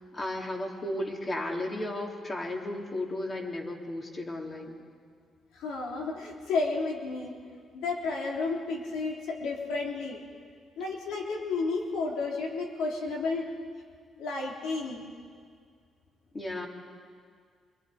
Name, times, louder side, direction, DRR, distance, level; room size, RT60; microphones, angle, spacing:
voice 1, 0.1-4.8 16.3-16.7, left 1 dB, 30° left, 1 dB, 3.3 m, -34 dB
voice 2, 5.5-7.4 7.7-10.2 10.8-13.5 14.2-15.1, left 3 dB, 90° left, -1 dB, 3.2 m, -32 dB
27.5 x 22.5 x 5.1 m, 2.1 s
cardioid pair, 90°, 0 cm